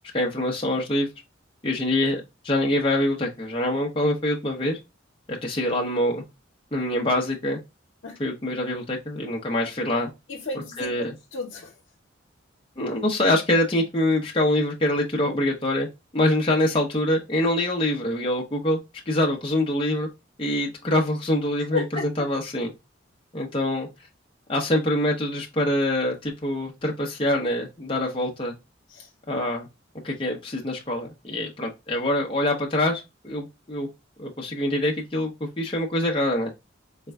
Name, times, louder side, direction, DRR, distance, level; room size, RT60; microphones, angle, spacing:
voice 1, 0.1-1.1 1.6-4.8 5.3-6.2 6.7-7.6 8.2-10.1 10.8-11.1 12.8-15.9 16.1-18.8 19.1-20.1 20.4-22.7 23.3-23.9 24.5-28.5 29.3-29.7 30.0-33.9 34.2-36.5, left 1 dB, 25° left, 0.7 m, -25 dB
voice 2, 10.3-11.7 21.7-22.1 28.9-29.1, left 3 dB, 70° left, 0.8 m, -32 dB
4.1 x 2.2 x 3.3 m
head